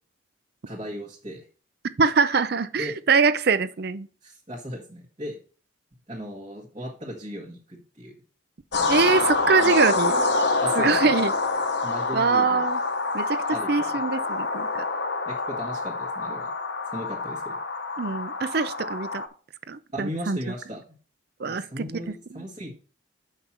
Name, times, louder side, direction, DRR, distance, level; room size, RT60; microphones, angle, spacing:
voice 1, 0.7-1.5 2.8-2.9 4.2-5.4 6.1-8.1 9.6-9.7 10.6-11.0 11.8-12.7 13.5-13.9 15.2-16.5 16.9-17.6 19.9-20.8 21.4-22.7, equal, 30° right, 1.6 m, -36 dB
voice 2, 2.0-4.1 8.9-10.2 10.8-11.3 12.1-12.8 13.1-14.9 18.0-19.2 19.7-20.4 21.4-21.8 22.3-22.4, right 5 dB, 50° right, 0.5 m, -23 dB
sound 1, 8.7-19.3, left 3 dB, 60° left, 1.0 m, -26 dB
7.2 x 5.8 x 4.6 m
head